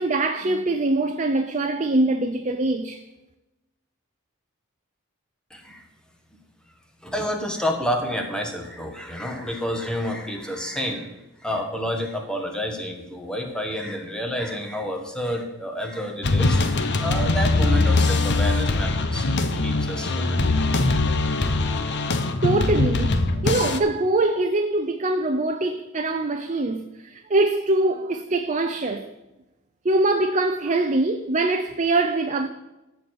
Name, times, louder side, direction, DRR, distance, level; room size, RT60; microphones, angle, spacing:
voice 1, 0.0-3.0 22.4-29.1 29.8-32.5, right 2 dB, 35° right, 0.6 m, -23 dB
voice 2, 5.5-5.9 6.6-6.7 7.0-19.3 19.6-20.4 21.3-21.6, equal, 5° left, 1.4 m, -29 dB
sound 1, 16.2-23.8, left 2 dB, 55° left, 0.8 m, -22 dB
13.5 x 4.7 x 7.9 m
head